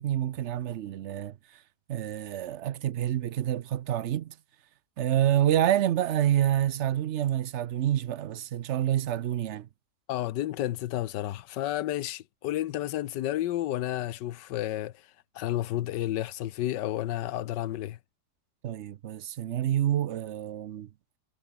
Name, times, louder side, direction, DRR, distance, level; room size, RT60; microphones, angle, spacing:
voice 1, 0.0-1.3 1.9-4.3 5.0-9.7 18.6-20.9, right 11 dB, 65° right, 0.7 m, -27 dB
voice 2, 10.1-14.9 15.3-18.0, left 13 dB, 85° left, 1.4 m, -31 dB
omnidirectional pair, 1.8 m